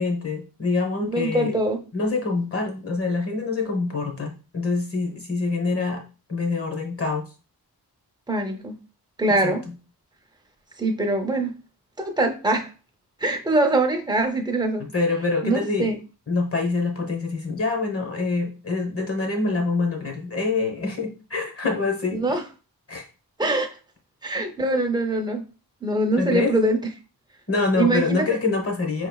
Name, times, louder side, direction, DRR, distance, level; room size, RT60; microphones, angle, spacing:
voice 1, 0.0-1.6 1.9-6.0 6.3-7.2 9.3-9.5 14.9-15.9 16.3-22.2 22.9-23.0 26.2-26.5 27.5-29.1, left 3 dB, 40° left, 1.1 m, -25 dB
voice 2, 1.0-1.8 8.3-8.7 9.2-9.6 10.8-11.6 12.0-12.7 13.2-14.8 15.4-16.0 22.1-22.4 23.4-23.8 24.2-25.4 25.8-26.8 27.8-28.2, right 2 dB, 10° right, 0.6 m, -23 dB
5.3 x 3.1 x 2.3 m
wide cardioid pair, 140°, 37 cm